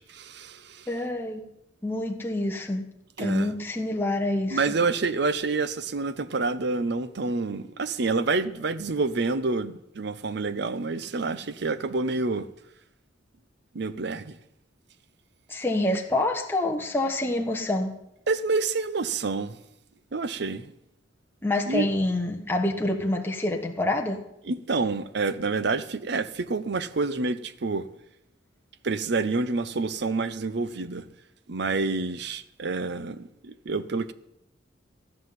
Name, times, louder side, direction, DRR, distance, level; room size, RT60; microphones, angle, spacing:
voice 1, 0.0-0.9 3.2-3.5 4.5-12.5 13.7-14.4 18.3-19.6 20.1-20.7 21.7-21.9 24.4-27.9 28.8-31.0 31.5-34.1, right 3 dB, 60° right, 0.7 m, -28 dB
voice 2, 0.9-1.4 1.8-2.8 3.2-4.6 15.5-17.9 21.4-24.2, left 2 dB, 10° left, 1.1 m, -27 dB
14.5 x 5.7 x 9.3 m
head